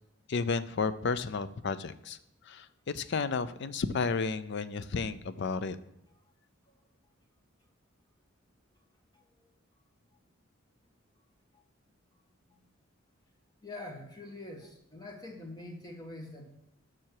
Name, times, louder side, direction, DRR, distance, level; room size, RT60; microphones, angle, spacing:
voice 1, 0.3-2.2 2.5-2.7 2.9-5.8, left 4 dB, 55° left, 14 dB, 0.5 m, -32 dB
voice 2, 13.6-16.5, left 2 dB, 20° left, 1 dB, 1.4 m, -45 dB
7.4 x 6.1 x 4.7 m, 0.85 s
head